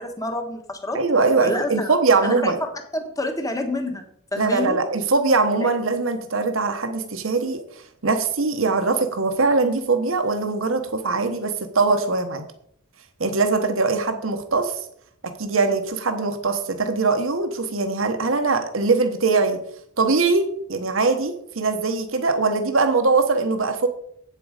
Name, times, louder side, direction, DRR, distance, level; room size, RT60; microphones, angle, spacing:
voice 1, 0.0-1.0 1.4-1.9 2.2-4.0 4.3-4.8 5.5-5.7, left 1 dB, 15° left, 5 dB, 1.2 m, -28 dB
voice 2, 0.9-2.6 4.4-7.6 8.0-12.5 13.2-14.7 15.2-19.6 20.0-23.9, right 3 dB, 70° right, 7 dB, 1.1 m, -21 dB
8.5 x 7.7 x 5.0 m, 0.68 s
head